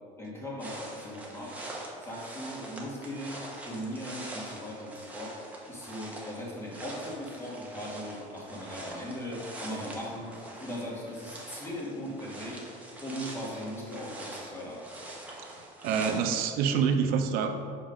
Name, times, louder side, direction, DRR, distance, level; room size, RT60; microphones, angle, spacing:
voice 1, 0.2-1.6 2.0-5.4 5.7-10.3 10.6-12.6 13.0-14.8, equal, 15° left, -4 dB, 1.6 m, -39 dB
sound 1, 0.6-16.4, right 1 dB, 10° right, 1.1 m, -44 dB
voice 2, 15.4-17.5, right 6 dB, 70° right, 6 dB, 0.7 m, -27 dB
6.0 x 5.2 x 5.0 m, 2.3 s
cardioid pair, 140°, 15 cm